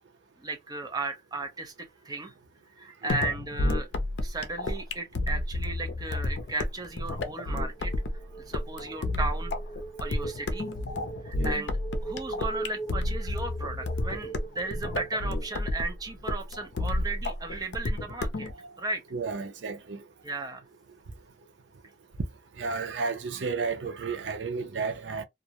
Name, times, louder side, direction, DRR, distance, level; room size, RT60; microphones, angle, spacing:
voice 1, 0.4-2.3 2.8-3.9 4.2-7.9 8.5-9.6 10.0-10.7 11.2-11.7 12.0-18.5 18.8-19.0 20.2-20.6, right 2 dB, 20° right, 0.6 m, -35 dB
sound 1, 3.1-18.5, left 2 dB, 75° left, 0.5 m, -31 dB
sound 2, 7.4-16.1, right 4 dB, 20° left, 0.4 m, -42 dB
voice 2, 19.1-20.0 22.6-25.2, right 4 dB, 85° right, 0.5 m, -32 dB
2.4 x 2.0 x 2.8 m
head